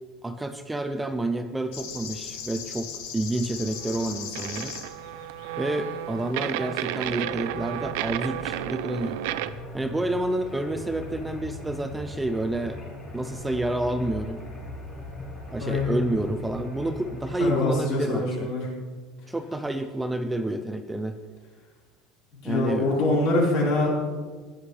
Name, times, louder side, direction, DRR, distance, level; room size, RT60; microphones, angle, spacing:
voice 1, 0.2-4.8 5.6-9.2 9.7-12.8 13.1-14.4 15.5-18.5 19.3-21.2 22.4-22.9, right 1 dB, 5° right, 8 dB, 0.4 m, -29 dB
sound 1, 1.7-7.1, left 7 dB, 90° left, 1.4 m, -40 dB
sound 2, 3.6-9.5, right 13 dB, 70° right, 0.4 m, -32 dB
sound 3, 5.9-17.5, left 1 dB, 15° left, 3.9 m, -40 dB
voice 2, 15.6-15.9 17.4-18.7 22.4-24.0, left 2 dB, 60° left, -5 dB, 4.1 m, -24 dB
15.0 x 10.0 x 3.2 m, 1.5 s
cardioid pair, 175°, 0 cm